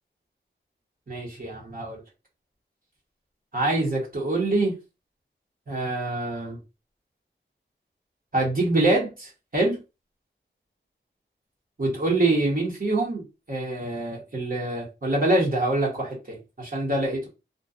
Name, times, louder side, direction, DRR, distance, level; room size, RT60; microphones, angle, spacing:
voice 1, 1.1-2.0 3.5-4.7 5.7-6.6 8.3-9.8 11.8-13.2 13.5-17.3, right 2 dB, 45° right, -3 dB, 0.9 m, -25 dB
2.6 x 2.2 x 2.3 m, 0.27 s
wide cardioid pair, 85°, 20 cm